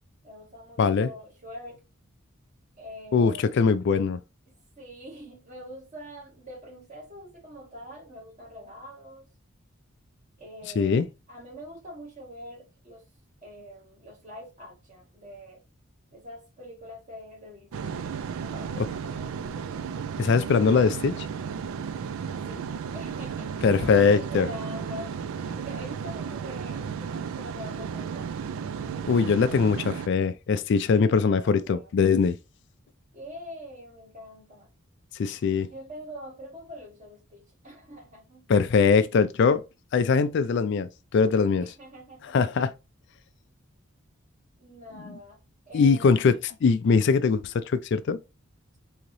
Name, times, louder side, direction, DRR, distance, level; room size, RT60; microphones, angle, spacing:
voice 1, 0.2-1.8 2.8-3.5 4.8-9.2 10.4-11.0 11.3-13.0 13.4-15.6 16.1-17.9 18.4-19.6 22.5-22.6 22.9-25.1 25.5-28.4 30.9-31.9 33.1-34.7 35.6-38.4 41.6-42.4 44.6-45.4 45.7-46.2, equal, 35° right, 1.5 m, -44 dB
voice 2, 0.8-1.1 3.1-4.2 10.8-11.1 18.8-18.9 20.2-21.3 23.6-24.5 29.1-32.4 35.2-35.7 38.5-39.6 39.9-41.7 42.3-42.7 44.9-45.2 45.7-48.2, left 5 dB, 55° left, 0.3 m, -22 dB
sound 1, 17.7-30.1, right 6 dB, 80° right, 0.3 m, -34 dB
3.9 x 2.8 x 3.0 m
head